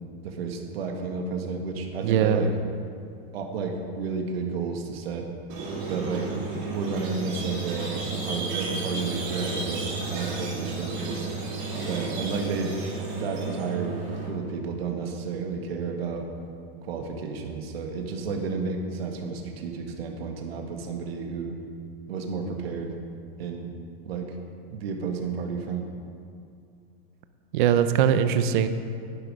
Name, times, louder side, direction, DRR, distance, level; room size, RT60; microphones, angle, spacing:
voice 1, 0.2-2.5 3.3-5.3 5.9-6.3 6.7-11.3 11.9-12.7 13.2-14.0 14.3-16.2 16.8-21.6 22.1-22.9 23.4-23.7 24.0-24.3 24.7-25.8, right 4 dB, 70° right, 2 dB, 1.9 m, -31 dB
voice 2, 2.0-2.5 27.5-28.7, right 9 dB, 50° right, 10 dB, 0.8 m, -21 dB
Squeak, 5.5-14.3, right 3 dB, 35° right, 3.3 m, -32 dB
11.0 x 11.0 x 5.1 m, 2.5 s
supercardioid pair, 150°, 31 cm